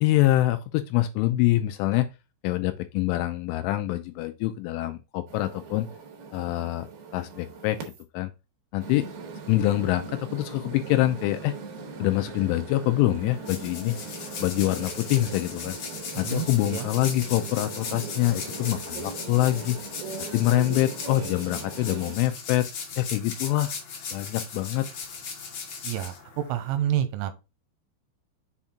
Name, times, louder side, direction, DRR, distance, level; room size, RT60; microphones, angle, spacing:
voice 1, 0.0-2.1 2.4-5.9 6.3-6.9 7.1-7.8 8.1-8.3 8.7-9.1 9.5-11.5 12.0-14.0 14.4-15.8 16.2-19.8 20.3-22.7 23.0-23.7 24.1-24.9, left 15 dB, 80° left, 2.9 m, -25 dB
sound 1, 5.3-8.0 8.8-22.2, right 4 dB, 65° right, 2.5 m, -40 dB
sound 2, 13.2-26.8, left 5 dB, 55° left, 2.0 m, -38 dB
voice 2, 16.2-16.9 25.8-27.3, right 11 dB, 85° right, 3.1 m, -29 dB
7.1 x 4.3 x 3.6 m
omnidirectional pair, 5.8 m